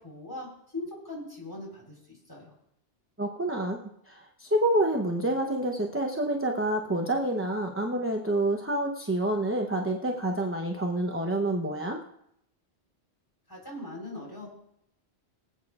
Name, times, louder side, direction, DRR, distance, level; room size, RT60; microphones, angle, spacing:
voice 1, 0.0-2.5 13.5-14.5, left 2 dB, 20° left, -3 dB, 3.9 m, -40 dB
voice 2, 3.2-3.8 4.1-12.0, right 1 dB, 15° right, 2 dB, 0.7 m, -28 dB
24.5 x 8.6 x 2.4 m, 0.74 s
omnidirectional pair, 1.2 m